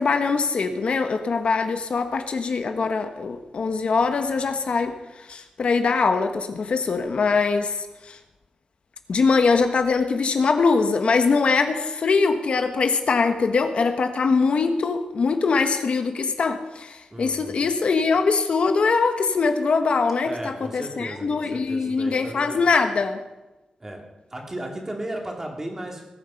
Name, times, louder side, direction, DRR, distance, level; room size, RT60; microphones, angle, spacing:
voice 1, 0.0-8.2 9.1-23.2, left 4 dB, 60° left, 7 dB, 1.2 m, -22 dB
voice 2, 17.1-17.7 20.2-22.6 23.8-24.0 24.3-26.1, right 1 dB, 20° right, 1 dB, 2.9 m, -35 dB
19.5 x 9.3 x 5.8 m, 1.0 s
wide cardioid pair, 140°, 2 cm